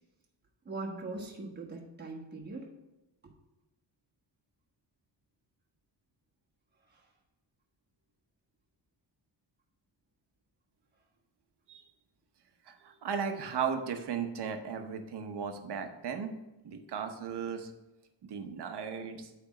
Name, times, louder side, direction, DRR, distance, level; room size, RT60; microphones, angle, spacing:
voice 1, 0.6-2.7 6.9-7.0, right 3 dB, 25° right, -2 dB, 1.3 m, -41 dB
voice 2, 12.7-16.3 16.6-17.7 18.2-19.3, right 6 dB, 65° right, 6 dB, 1.0 m, -36 dB
8.6 x 3.5 x 5.9 m, 0.98 s
wide cardioid pair, 135°, 43 cm